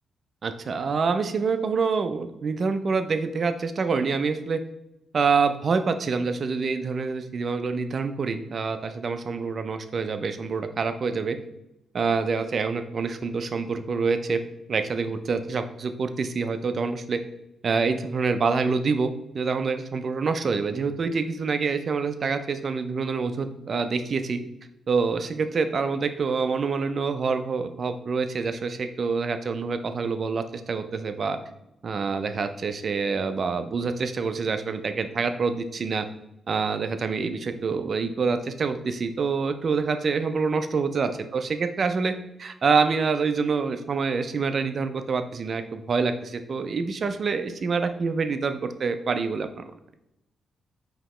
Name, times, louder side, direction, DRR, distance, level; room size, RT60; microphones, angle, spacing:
voice 1, 0.4-4.6 5.1-11.4 11.9-14.4 14.7-17.2 17.6-19.1 19.3-24.4 24.9-31.4 31.8-36.1 36.5-42.1 42.4-49.5, right 4 dB, 40° right, 9 dB, 0.3 m, -26 dB
5.2 x 2.8 x 3.1 m, 0.87 s
wide cardioid pair, 155°, 0 cm